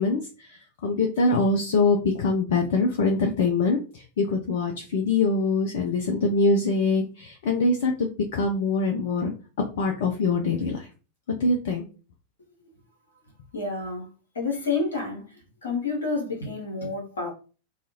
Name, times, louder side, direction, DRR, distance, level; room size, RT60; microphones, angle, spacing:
voice 1, 0.0-9.3 9.8-10.9 11.3-11.9, left 3 dB, 55° left, 0.4 m, -24 dB
voice 2, 13.5-14.1 14.3-17.3, left 3 dB, 70° left, 1.1 m, -29 dB
2.7 x 2.3 x 2.9 m
figure-of-eight pair, 90°, 0 cm